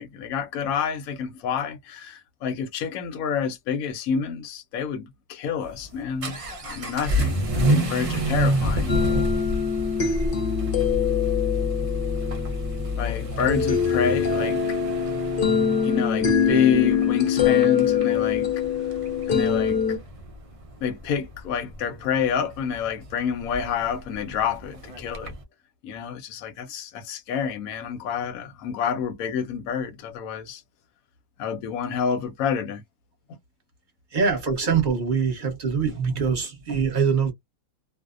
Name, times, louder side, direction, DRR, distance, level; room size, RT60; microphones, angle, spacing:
voice 1, 0.0-9.0 13.0-14.8 15.6-18.5 19.3-19.8 20.8-25.3 25.8-30.6 31.4-32.8, left 7 dB, 80° left, 1.0 m, -28 dB
Vehicle / Accelerating revving vroom, 5.6-25.4, left 1 dB, 65° right, 0.3 m, -29 dB
sound 1, 8.9-20.0, left 7 dB, 50° left, 0.7 m, -24 dB
voice 2, 34.1-37.3, right 6 dB, 40° right, 1.0 m, -23 dB
2.6 x 2.0 x 2.4 m
omnidirectional pair, 1.5 m